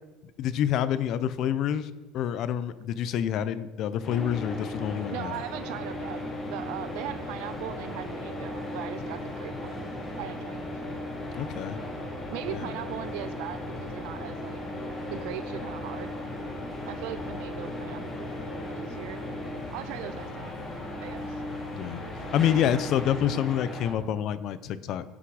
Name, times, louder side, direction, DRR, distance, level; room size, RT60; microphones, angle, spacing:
voice 1, 0.4-5.4 11.3-11.8 12.5-12.7 21.7-25.0, left 10 dB, 45° left, 15 dB, 0.6 m, -28 dB
sound 1, 4.0-23.9, left 1 dB, 30° left, 3.6 m, -36 dB
voice 2, 5.1-9.9 10.2-10.7 12.3-14.6 15.1-16.1 16.8-19.2 19.7-20.6 21.0-21.4, right 14 dB, 70° right, 12 dB, 0.4 m, -39 dB
16.0 x 6.0 x 4.9 m, 1.1 s
cardioid pair, 150°, 0 cm